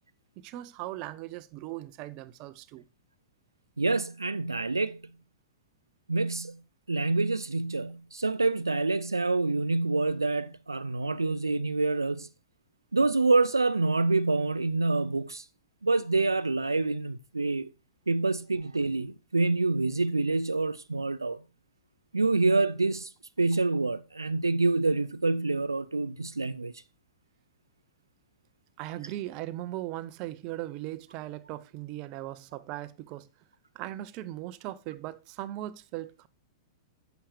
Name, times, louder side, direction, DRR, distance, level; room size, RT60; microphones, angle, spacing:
voice 1, 0.4-2.8 28.8-33.3 33.7-36.3, right 15 dB, 40° right, 0.7 m, -38 dB
voice 2, 3.8-5.0 6.1-6.6 6.9-12.3 12.9-15.5 15.8-17.7 18.1-21.4 22.1-23.1 23.4-26.7, right 3 dB, 85° right, 0.5 m, -27 dB
11.5 x 8.0 x 3.2 m
figure-of-eight pair, 100°, 2 cm